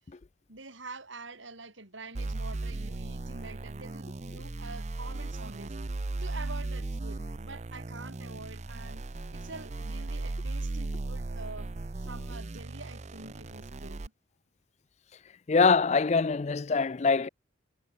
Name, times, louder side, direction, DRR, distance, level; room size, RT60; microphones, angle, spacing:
voice 1, 0.5-9.0 9.3-11.7 12.0-14.1, right 3 dB, 75° right, 7.9 m, -46 dB
sound 1, 2.1-14.1, right 2 dB, 35° right, 0.6 m, -37 dB
voice 2, 15.5-17.3, left 4 dB, 35° left, 0.4 m, -24 dB
head